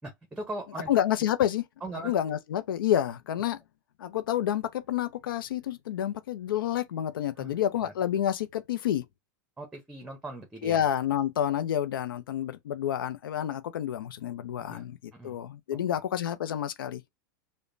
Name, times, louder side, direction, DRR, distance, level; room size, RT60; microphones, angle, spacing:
voice 1, 0.0-0.9 1.8-2.4 7.4-7.9 9.6-10.9 14.7-14.8 15.1-15.4, right 2 dB, 10° right, 0.7 m, -40 dB
voice 2, 0.9-1.6 2.0-3.6 4.0-9.0 10.6-17.0, left 11 dB, 85° left, 0.5 m, -29 dB
5.0 x 2.1 x 2.5 m
hypercardioid pair, 130°, 11 cm